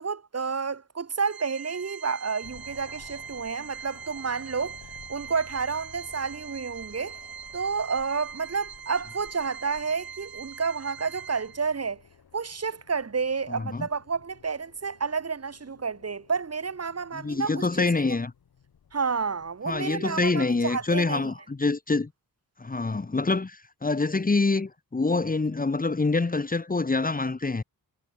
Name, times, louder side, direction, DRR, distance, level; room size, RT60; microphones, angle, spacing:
voice 1, 0.0-4.8 5.1-7.2 7.5-12.0 12.3-17.9 18.9-21.2, right 5 dB, 45° right, 4.2 m, -30 dB
Organ, 1.2-11.9, right 8 dB, 80° right, 3.1 m, -43 dB
sound 1, 2.4-21.0, left 8 dB, 85° left, 6.9 m, -54 dB
voice 2, 13.5-13.9 17.1-18.3 19.7-22.1 22.6-27.6, left 3 dB, 25° left, 1.9 m, -26 dB
wide cardioid pair, 155°, 36 cm